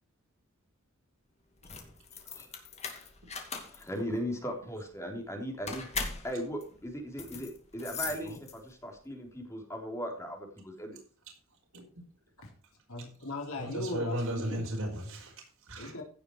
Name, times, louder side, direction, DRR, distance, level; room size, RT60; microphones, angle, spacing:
sound 1, 1.5-8.9, left 5 dB, 30° left, 2.5 m, -40 dB
voice 1, 3.7-5.9 6.2-11.0, equal, 15° left, 2 dB, 3.4 m, -38 dB
voice 2, 8.1-8.4 12.4-12.5 12.9-14.7 15.8-16.0, left 2 dB, 80° left, 0 dB, 3.6 m, -39 dB
voice 3, 13.6-15.9, right 1 dB, 75° right, 0 dB, 5.2 m, -36 dB
16.0 x 6.9 x 4.7 m, 0.42 s
head